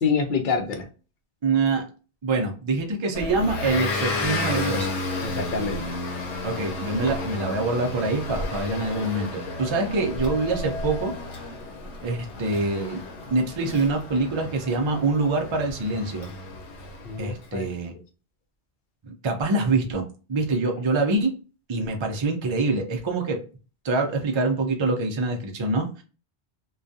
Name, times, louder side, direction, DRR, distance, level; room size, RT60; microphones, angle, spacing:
voice 1, 0.0-0.8 5.2-5.8 17.0-17.7, left 5 dB, 60° left, 5 dB, 0.6 m, -26 dB
voice 2, 1.4-1.8 2.2-4.9 6.4-11.1 12.0-13.0 13.3-16.3 17.2-17.9 19.1-20.0 20.3-21.4 21.7-23.4 23.8-26.0, right 3 dB, 45° right, 2 dB, 0.4 m, -25 dB
Motor vehicle (road) / Engine, 3.1-17.4, left 2 dB, 85° left, 1.0 m, -32 dB
2.3 x 2.2 x 2.6 m, 0.34 s
omnidirectional pair, 1.1 m